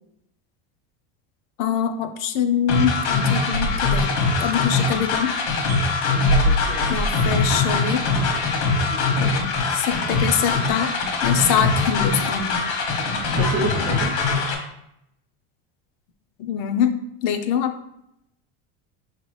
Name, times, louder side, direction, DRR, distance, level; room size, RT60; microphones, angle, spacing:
voice 1, 1.6-5.3 6.9-8.0 9.7-10.9 11.2-12.6 16.4-16.9 17.2-17.7, left 8 dB, 50° left, 7 dB, 0.4 m, -24 dB
sound 1, 2.7-14.5, left 3 dB, 85° left, 1.2 m, -22 dB
sound 2, 3.5-5.1 5.5-8.5, equal, 90° right, 0.9 m, -26 dB
voice 2, 6.1-7.0 7.3-7.4 8.7-9.5 13.4-14.1, right 2 dB, 35° right, 3 dB, 0.5 m, -31 dB
5.9 x 2.9 x 3.1 m, 0.80 s
cardioid pair, 170°, 34 cm